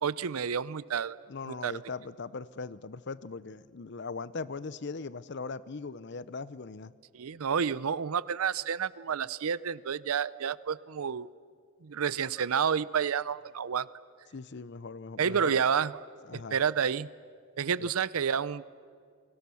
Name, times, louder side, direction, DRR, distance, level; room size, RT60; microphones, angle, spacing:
voice 1, 0.0-1.2 1.5-1.7 7.1-11.3 11.8-13.9 15.2-16.0 16.3-17.1 17.6-18.6, right 7 dB, 85° right, 19 dB, 0.5 m, -30 dB
voice 2, 1.3-6.9 14.3-15.6 16.2-16.6 17.8-17.9, left 4 dB, 55° left, 17 dB, 0.6 m, -40 dB
29.0 x 24.0 x 7.0 m, 2.2 s
head